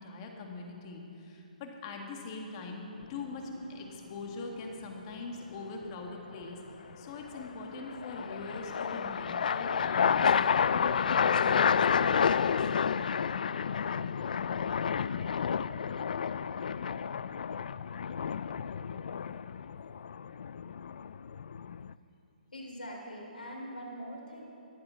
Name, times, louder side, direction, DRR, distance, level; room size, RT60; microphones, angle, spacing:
voice 1, 0.0-6.6 7.0-12.6, left 3 dB, 35° left, 2 dB, 1.9 m, -42 dB
sound 1, 3.0-3.5 7.3-21.9, left 7 dB, 65° left, 0.3 m, -30 dB
voice 2, 22.5-24.4, equal, 85° left, -1 dB, 3.4 m, -42 dB
14.0 x 8.8 x 6.3 m, 2.9 s
hypercardioid pair, 145°, 5 cm